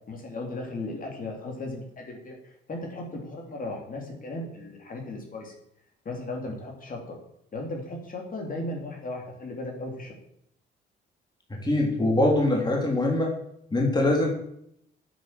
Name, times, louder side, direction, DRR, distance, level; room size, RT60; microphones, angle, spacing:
voice 1, 0.1-5.5 6.1-7.2 7.5-10.1, left 2 dB, 45° left, 1 dB, 3.5 m, -36 dB
voice 2, 11.5-13.3 13.7-14.3, left 1 dB, 20° left, -1 dB, 3.1 m, -23 dB
9.0 x 8.3 x 7.7 m, 0.74 s
cardioid pair, 90°, 20 cm